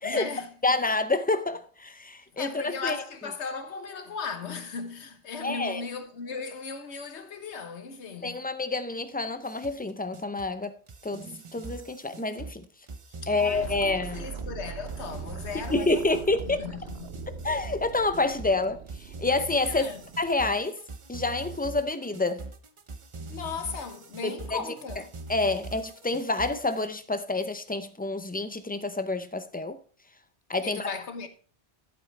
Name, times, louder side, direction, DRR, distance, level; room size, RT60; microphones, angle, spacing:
voice 1, 0.0-0.5 2.4-8.5 13.2-16.2 16.5-17.3 19.7-20.0 23.3-25.1 30.6-31.3, left 5 dB, 80° left, 1.4 m, -37 dB
voice 2, 0.6-3.0 5.4-5.8 8.2-12.7 13.3-14.3 15.7-16.7 17.4-20.8 21.1-22.5 24.2-24.6 25.3-29.8 30.5-30.9, left 3 dB, 15° left, 0.3 m, -28 dB
sound 1, 9.4-26.9, right 2 dB, 35° right, 0.6 m, -42 dB
sound 2, 13.5-20.4, right 9 dB, 70° right, 0.8 m, -42 dB
12.0 x 8.1 x 3.3 m
omnidirectional pair, 1.1 m